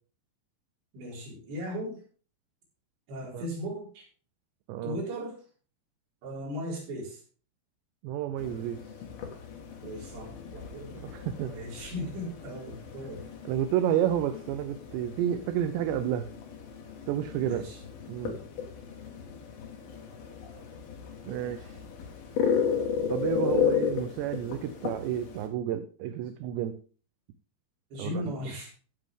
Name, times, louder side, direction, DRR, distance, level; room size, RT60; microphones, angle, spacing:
voice 1, 0.9-2.0 3.1-4.0 4.8-5.4 6.2-7.2 9.8-11.1 11.5-13.3 17.4-17.8 27.9-28.7, equal, 65° right, -4 dB, 6.5 m, -37 dB
voice 2, 4.7-5.0 8.0-8.8 10.9-11.5 13.4-16.3 17.1-17.7 18.1-18.4 21.3-21.8 23.1-26.8 28.0-28.5, right 10 dB, 80° right, 10 dB, 2.7 m, -30 dB
sound 1, 8.4-25.5, left 7 dB, 60° left, 3.2 m, -34 dB
15.0 x 7.3 x 3.7 m, 0.39 s
omnidirectional pair, 5.5 m